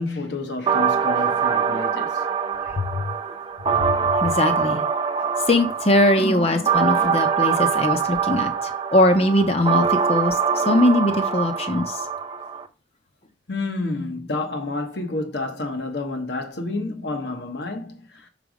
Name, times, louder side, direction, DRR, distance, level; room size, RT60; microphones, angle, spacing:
voice 1, 0.0-2.2 6.2-7.1 13.5-18.3, left 2 dB, 60° left, 1.1 m, -30 dB
sound 1, 0.7-12.7, right 6 dB, 25° right, 0.4 m, -23 dB
voice 2, 3.7-4.8 5.5-12.1, left 1 dB, 30° left, 0.8 m, -21 dB
6.2 x 3.4 x 5.0 m
head